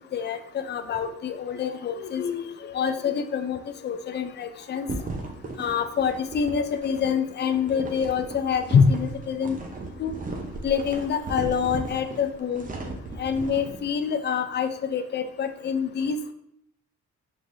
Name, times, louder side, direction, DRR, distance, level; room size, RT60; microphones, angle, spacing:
voice 1, 0.0-4.9 5.6-9.6 10.0-10.1 10.6-12.7 13.2-16.3, left 6 dB, 35° left, 9 dB, 0.5 m, -26 dB
sound 1, 4.9-13.8, right 2 dB, 25° right, 0.8 m, -36 dB
6.1 x 3.2 x 2.7 m, 0.76 s
cardioid pair, 90°, 30 cm